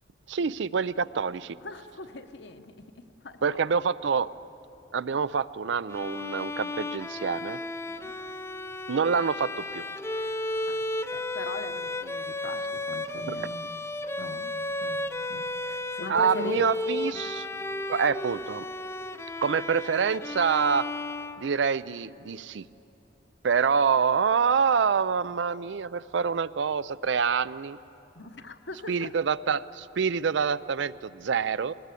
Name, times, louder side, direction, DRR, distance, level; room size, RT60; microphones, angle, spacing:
voice 1, 0.3-1.6 3.4-4.3 4.9-7.6 8.9-9.8 13.3-13.4 16.1-17.5 17.9-18.7 19.4-20.9 21.4-22.6 23.4-27.8 28.9-31.7, right 6 dB, 80° right, 18 dB, 0.5 m, -26 dB
voice 2, 1.6-3.6 7.9-8.1 10.7-10.8 11.1-13.7 14.2-14.5 14.8-15.0 15.3-16.7 17.1-17.2 28.1-29.1, left 2 dB, 75° left, 8 dB, 1.0 m, -41 dB
Bowed string instrument, 5.9-21.9, left 2 dB, 15° left, 0.5 m, -34 dB
23.0 x 19.5 x 8.4 m, 2.8 s
head